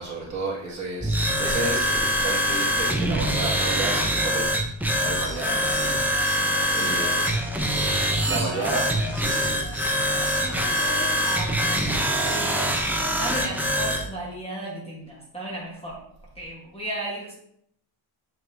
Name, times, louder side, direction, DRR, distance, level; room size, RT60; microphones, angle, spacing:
voice 1, 0.0-4.5 5.0-6.0 6.7-7.3 8.3-9.6, right 2 dB, 35° right, -6 dB, 2.3 m, -32 dB
sound 1, 1.0-14.1, equal, 5° right, 0.6 m, -24 dB
sound 2, 5.0-13.3, left 3 dB, 50° left, 1.5 m, -40 dB
voice 2, 6.7-7.1 8.1-8.8 10.3-12.8 13.1-16.0 16.3-17.3, right 1 dB, 10° left, -5 dB, 1.2 m, -35 dB
7.8 x 4.5 x 2.7 m, 0.71 s
wide cardioid pair, 140°, 50 cm